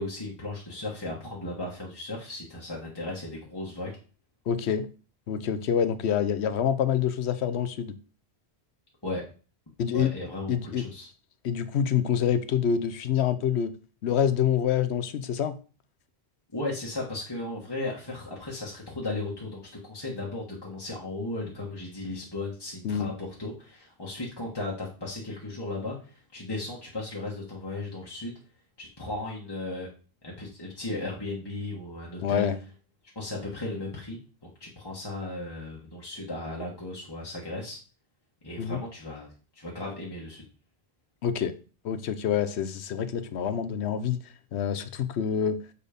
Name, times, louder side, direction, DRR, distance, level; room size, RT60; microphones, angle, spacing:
voice 1, 0.0-3.9 9.0-9.2 9.9-11.1 16.5-28.3 28.8-29.9 30.2-32.5 33.1-37.8 38.4-39.3 39.5-40.4, left 2 dB, 25° left, 1.5 m, -36 dB
voice 2, 4.5-4.9 5.3-7.9 9.8-10.1 10.5-10.8 11.4-13.7 14.0-15.6 22.8-23.1 32.2-32.5 38.6-38.8 41.2-41.5 41.8-44.2 44.5-45.6, left 8 dB, 90° left, 1.0 m, -26 dB
6.9 x 4.3 x 5.1 m
omnidirectional pair, 1.1 m